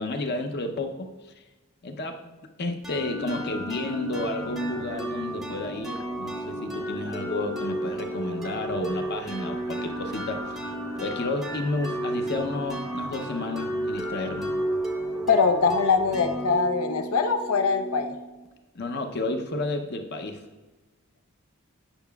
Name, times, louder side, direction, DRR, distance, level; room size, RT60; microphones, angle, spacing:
voice 1, 0.0-1.3 1.8-10.7 11.0-14.5 18.7-20.4, left 2 dB, 50° left, 5 dB, 0.6 m, -31 dB
sound 1, 2.8-18.5, right 1 dB, ahead, 0.6 m, -33 dB
voice 2, 15.3-18.1, left 5 dB, 90° left, 6 dB, 0.6 m, -22 dB
8.8 x 5.6 x 2.3 m, 1.2 s
head